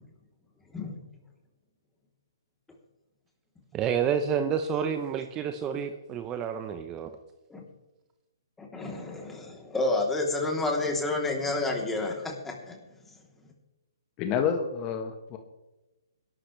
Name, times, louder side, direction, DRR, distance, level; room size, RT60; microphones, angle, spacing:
voice 1, 3.7-7.1, right 7 dB, 20° right, 8 dB, 0.9 m, -29 dB
voice 2, 8.6-12.8, left 2 dB, 10° left, 0 dB, 3.3 m, -30 dB
voice 3, 14.2-15.4, left 7 dB, 25° left, 5 dB, 1.5 m, -28 dB
21.5 x 12.0 x 3.3 m, 1.0 s
hypercardioid pair, 145°, 2 cm